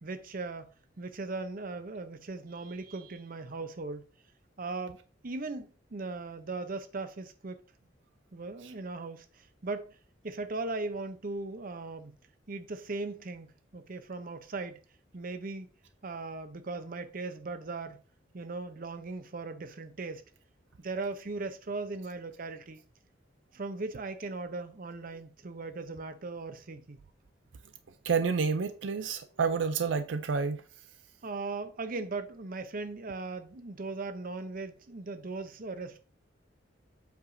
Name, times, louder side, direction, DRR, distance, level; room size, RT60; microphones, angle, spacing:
voice 1, 0.0-0.7 1.0-4.0 4.6-5.0 5.2-7.6 8.3-9.9 10.2-12.1 12.5-14.8 15.1-15.7 16.0-18.0 18.3-20.2 20.8-22.8 23.5-27.0 31.2-36.0, right 3 dB, 50° right, 0.7 m, -38 dB
voice 2, 28.0-30.6, right 5 dB, 85° right, 0.5 m, -29 dB
8.0 x 4.9 x 2.7 m
head